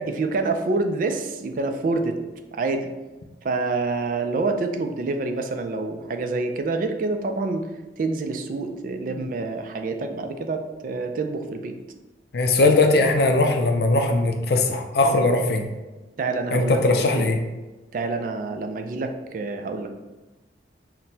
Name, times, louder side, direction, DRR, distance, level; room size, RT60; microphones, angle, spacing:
voice 1, 0.1-2.2 2.5-2.9 3.4-7.7 8.0-11.8 12.6-12.8 15.1-15.3 16.2-17.3 17.9-19.9, right 3 dB, 50° right, 5 dB, 0.3 m, -27 dB
voice 2, 12.3-15.7 16.5-17.4, left 2 dB, 60° left, 4 dB, 0.4 m, -20 dB
5.9 x 2.1 x 2.7 m, 1.2 s
head